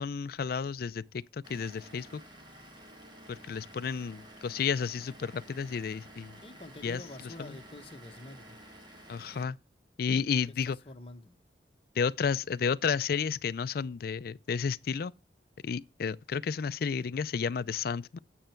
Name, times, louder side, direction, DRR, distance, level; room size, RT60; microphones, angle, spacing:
voice 1, 0.0-2.2 3.3-6.4 6.8-7.0 7.4-7.5 9.1-9.6 10.0-10.8 12.0-15.1 15.6-18.2, left 6 dB, 55° left, 0.4 m, -32 dB
Vehicle / Engine, 1.4-9.4, right 1 dB, 25° right, 1.5 m, -52 dB
voice 2, 5.9-8.6 10.5-11.4, left 2 dB, 30° left, 1.2 m, -48 dB
9.0 x 6.5 x 4.4 m
head